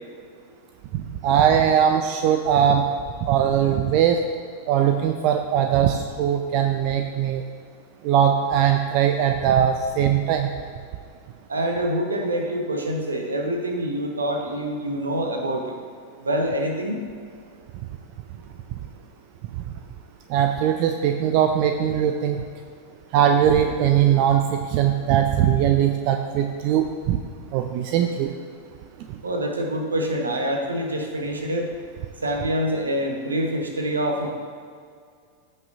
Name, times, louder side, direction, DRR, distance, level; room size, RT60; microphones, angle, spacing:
voice 1, 1.2-2.8 3.2-4.2 4.7-7.4 8.0-10.5 20.3-22.4 23.1-27.2 27.5-28.3, right 9 dB, 45° right, 5 dB, 0.5 m, -20 dB
voice 2, 11.5-15.7 16.2-17.0 29.2-31.7 32.2-34.3, right 1 dB, 75° right, 2 dB, 1.1 m, -26 dB
15.5 x 5.5 x 2.7 m, 2.1 s
figure-of-eight pair, 90°, 0 cm